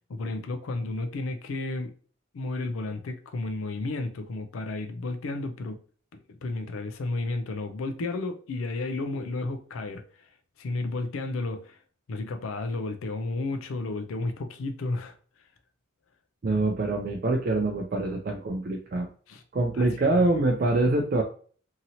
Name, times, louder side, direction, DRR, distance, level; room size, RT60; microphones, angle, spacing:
voice 1, 0.1-1.9 2.3-5.8 6.1-11.8 12.1-15.2 19.3-19.4 19.7-20.1, left 2 dB, 85° left, 0.4 m, -32 dB
voice 2, 16.4-19.1 19.5-21.2, right 2 dB, 45° right, 0.3 m, -25 dB
2.8 x 2.7 x 2.7 m
head